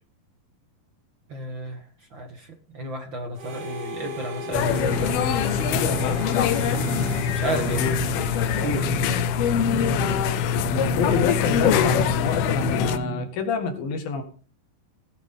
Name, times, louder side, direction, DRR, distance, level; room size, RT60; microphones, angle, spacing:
voice 1, 1.3-1.8 2.1-2.5 2.7-4.7 7.3-7.9 8.6-8.9, right 2 dB, 55° right, 5 dB, 1.3 m, -32 dB
Harmonica, 3.3-9.7, left 1 dB, 80° right, 8.8 m, -38 dB
sound 1, 4.4-13.2, right 4 dB, 40° right, 4.3 m, -32 dB
sound 2, 4.5-13.0, left 8 dB, 85° left, 2.9 m, -23 dB
voice 2, 10.9-14.2, left 5 dB, 70° left, 6 dB, 3.7 m, -27 dB
18.0 x 10.5 x 3.8 m, 0.40 s
omnidirectional pair, 4.5 m